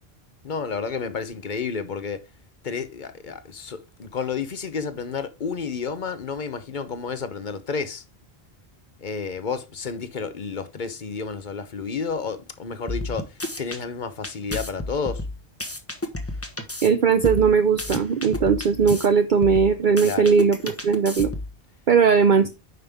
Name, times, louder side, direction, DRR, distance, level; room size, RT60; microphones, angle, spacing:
voice 1, 0.4-2.2 2.6-8.0 9.0-15.2 20.0-20.3, left 5 dB, 50° left, 1.0 m, -31 dB
sound 1, 12.9-13.8 14.2-16.9 17.2-19.1 19.4-21.6, left 1 dB, 15° left, 1.1 m, -31 dB
voice 2, 16.8-21.3 21.9-22.5, right 6 dB, 55° right, 0.8 m, -19 dB
9.6 x 5.4 x 3.5 m
omnidirectional pair, 1.1 m